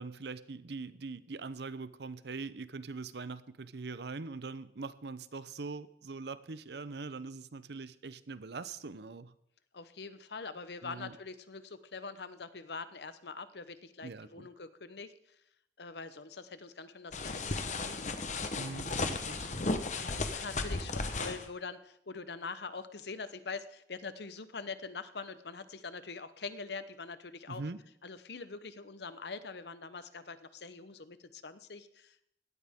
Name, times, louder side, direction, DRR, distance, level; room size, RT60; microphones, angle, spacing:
voice 1, 0.0-9.3 10.8-11.2 14.0-14.5 18.5-19.8 20.1-20.3 27.5-27.8, right 4 dB, 70° right, 15 dB, 0.7 m, -42 dB
voice 2, 9.7-15.1 15.8-18.0 18.7-18.9 19.9-27.6 28.0-32.3, left 4 dB, 70° left, 13 dB, 0.9 m, -44 dB
sound 1, 17.1-21.4, left 3 dB, 40° left, 1.0 m, -35 dB
17.0 x 13.0 x 3.6 m, 0.74 s
head